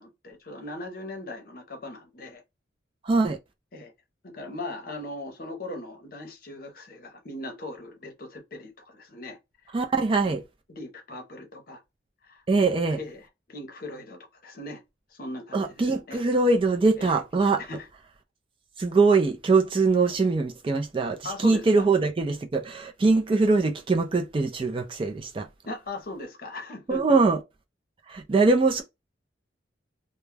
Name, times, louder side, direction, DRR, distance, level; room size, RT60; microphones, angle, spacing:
voice 1, 0.0-2.4 3.7-3.9 4.2-9.4 10.7-11.8 12.2-12.4 12.9-14.8 15.1-16.2 17.0-17.2 17.6-17.9 21.2-21.9 25.6-27.2, left 2 dB, 50° left, 0.7 m, -39 dB
voice 2, 3.1-3.4 9.7-10.4 12.5-13.0 15.5-17.6 18.8-25.5 26.9-27.4 28.1-28.8, right 3 dB, 30° right, 0.3 m, -22 dB
2.2 x 2.1 x 3.2 m
head